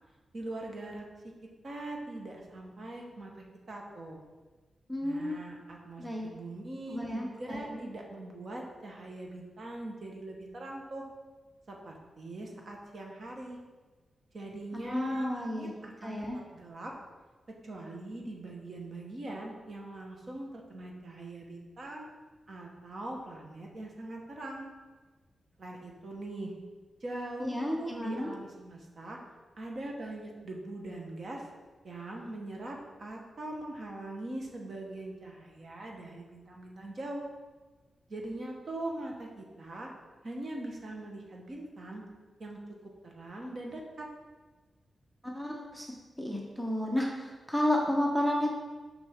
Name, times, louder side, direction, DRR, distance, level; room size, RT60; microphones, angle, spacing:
voice 1, 0.3-1.0 1.6-4.2 5.0-11.1 11.7-13.6 14.3-16.9 17.6-22.1 22.5-24.7 25.6-26.5 27.0-29.2 29.6-31.5 31.8-37.2 38.1-39.9 40.2-42.0 42.4-42.6 43.0-44.1, right 2 dB, 45° right, 0 dB, 1.0 m, -42 dB
voice 2, 4.9-5.4 6.0-6.3 6.9-7.8 14.8-15.7 16.0-16.4 27.4-28.3 45.2-45.9 46.2-48.5, left 1 dB, 5° right, -1 dB, 0.7 m, -31 dB
6.6 x 5.3 x 3.5 m, 1.3 s
wide cardioid pair, 155°, 0 cm